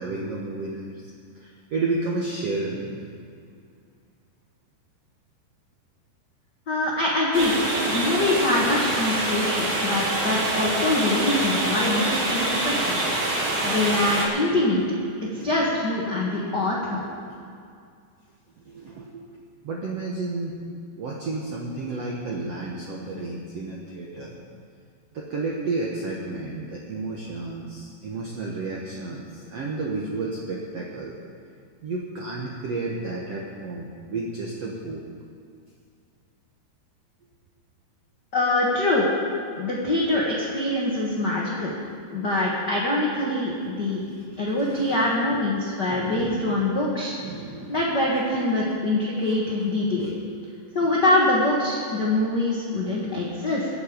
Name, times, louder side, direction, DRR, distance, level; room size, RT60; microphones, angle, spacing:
voice 1, 0.0-3.1 15.3-15.8 16.6-16.7 17.0-17.4 18.6-19.4 19.6-20.7 21.0-24.4 25.1-31.1 31.8-35.0 44.0-44.2 44.6-45.4 45.9-46.6 47.2-47.8 48.6-48.7 49.2-49.4 50.0-50.1, right 3 dB, 85° right, -2 dB, 1.4 m, -32 dB
voice 2, 6.7-13.0 13.6-14.8 15.2-17.0 38.3-39.1 39.6-41.7 42.1-44.1 44.4-47.1 47.7-50.1 50.7-53.7, left 2 dB, 85° left, -4 dB, 0.9 m, -24 dB
sound 1, 7.3-14.3, right 1 dB, 30° right, 2.0 m, -25 dB
22.5 x 7.9 x 5.1 m, 2.3 s
omnidirectional pair, 4.8 m